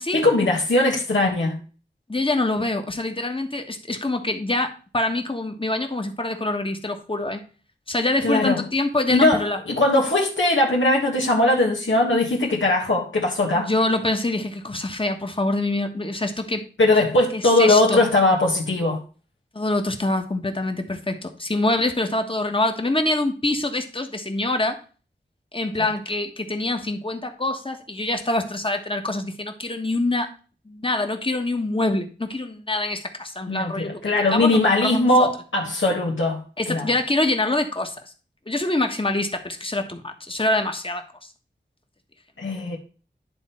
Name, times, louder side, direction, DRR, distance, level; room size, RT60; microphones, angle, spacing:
voice 1, 0.1-1.6 8.2-8.6 9.1-13.7 16.8-19.0 33.5-36.4 36.7-36.9 42.4-42.8, left 2 dB, 85° left, 1.4 m, -20 dB
voice 2, 2.1-7.4 7.9-9.6 13.6-16.6 17.3-18.0 19.5-24.8 25.5-30.3 30.7-35.0 36.6-37.9 38.5-41.0, left 2 dB, 30° left, 1.2 m, -25 dB
10.5 x 3.7 x 4.3 m
wide cardioid pair, 60°, 19 cm